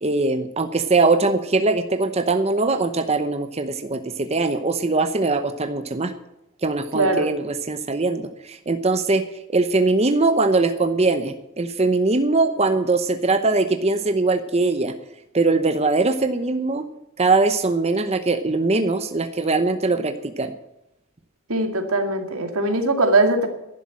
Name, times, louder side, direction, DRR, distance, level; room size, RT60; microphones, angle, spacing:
voice 1, 0.0-6.1 6.6-9.2 9.5-14.9 15.3-16.9 17.2-20.5, right 3 dB, 30° right, 8 dB, 0.8 m, -21 dB
voice 2, 6.9-7.3 21.5-23.5, right 2 dB, 85° right, 6 dB, 2.3 m, -20 dB
11.5 x 11.0 x 7.6 m, 0.88 s
head